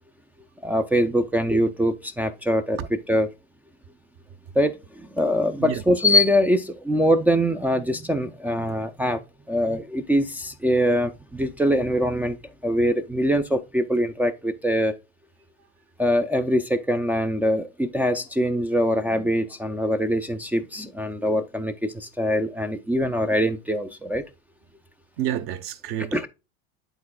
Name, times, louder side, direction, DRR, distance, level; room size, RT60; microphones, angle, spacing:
voice 1, 0.6-3.3 4.6-4.7 5.2-9.2 9.5-12.4 12.6-14.9 16.0-24.2 26.1-26.3, equal, 5° right, 0.4 m, -23 dB
voice 2, 25.2-26.3, right 10 dB, 45° right, 0.9 m, -29 dB
11.0 x 3.9 x 2.2 m
supercardioid pair, 115°, 30 cm